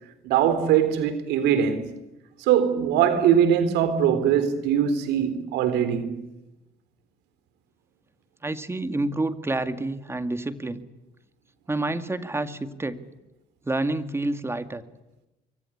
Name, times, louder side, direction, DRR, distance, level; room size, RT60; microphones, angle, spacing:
voice 1, 0.2-1.9 2.4-6.1, right 9 dB, 90° right, 3.7 m, -21 dB
voice 2, 8.4-10.8 11.7-13.0 13.7-14.8, right 2 dB, 15° right, 2.0 m, -28 dB
25.5 x 23.5 x 9.8 m
cardioid pair, 110°, 17 cm